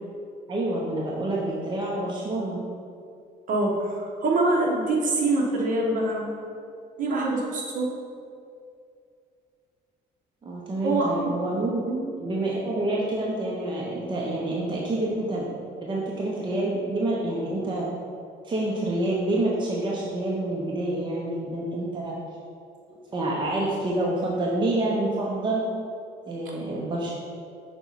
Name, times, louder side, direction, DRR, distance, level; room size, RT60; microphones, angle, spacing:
voice 1, 0.5-2.6 10.4-11.8 12.2-17.9 18.4-22.1 23.1-25.6 26.3-27.1, right 2 dB, 30° right, -4 dB, 0.9 m, -27 dB
voice 2, 3.5-6.2 7.0-7.9 10.8-11.1 11.8-12.1 26.6-26.7, right 2 dB, 50° right, -2 dB, 1.2 m, -24 dB
6.0 x 4.1 x 4.1 m, 2.4 s
cardioid pair, 110°, 17 cm